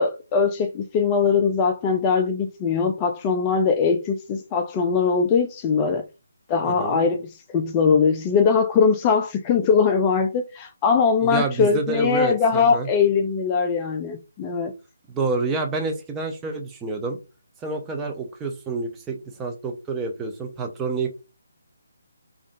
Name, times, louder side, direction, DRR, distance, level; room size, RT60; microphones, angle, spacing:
voice 1, 0.0-6.0 6.5-7.2 7.5-14.7, left 5 dB, 20° left, 0.4 m, -21 dB
voice 2, 6.6-7.0 11.2-12.9 15.1-17.2 17.6-21.1, right 3 dB, 10° right, 0.6 m, -28 dB
5.0 x 2.4 x 2.5 m
figure-of-eight pair, 145°, 0 cm